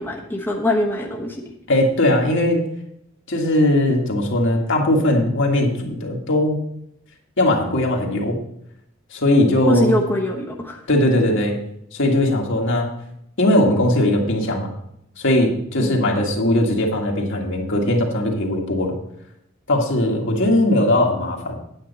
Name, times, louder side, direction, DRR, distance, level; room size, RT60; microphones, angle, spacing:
voice 1, 0.0-1.5 9.7-10.8 15.8-16.0, left 1 dB, 10° left, -2 dB, 1.1 m, -22 dB
voice 2, 1.7-2.6 3.3-6.6 7.4-8.4 9.1-10.0 10.9-11.6 11.9-12.9 13.4-14.7 15.2-19.0 19.7-21.6, left 1 dB, 65° left, 0 dB, 1.9 m, -19 dB
9.2 x 9.1 x 4.1 m, 0.75 s
head